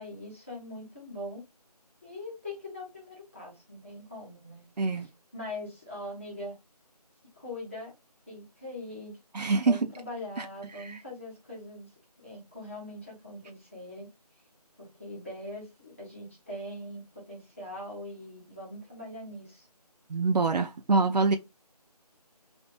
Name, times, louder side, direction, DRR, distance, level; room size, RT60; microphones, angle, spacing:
voice 1, 0.0-1.4 2.0-4.6 4.9-6.6 7.4-7.9 8.3-9.2 9.6-11.9 12.2-14.1 14.8-19.7, left 1 dB, 20° left, 1.1 m, -42 dB
voice 2, 4.8-5.1 9.3-9.8 10.4-10.5 10.7-11.0 20.1-21.4, right 3 dB, 85° right, 0.6 m, -25 dB
3.2 x 2.6 x 3.0 m
figure-of-eight pair, 175°, 21 cm